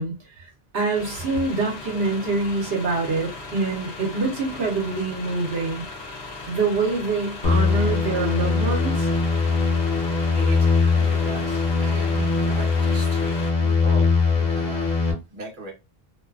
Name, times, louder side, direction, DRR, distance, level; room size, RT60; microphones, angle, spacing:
voice 1, 0.0-5.8 6.5-9.1, right 3 dB, 75° right, -2 dB, 1.0 m, -25 dB
sound 1, 0.9-13.5, left 3 dB, 80° left, 0.9 m, -38 dB
sound 2, 7.4-15.1, left 4 dB, 50° left, 0.8 m, -21 dB
voice 2, 10.4-14.1 14.3-15.7, right 2 dB, 55° right, 0 dB, 1.0 m, -39 dB
2.6 x 2.3 x 2.3 m, 0.26 s
omnidirectional pair, 1.0 m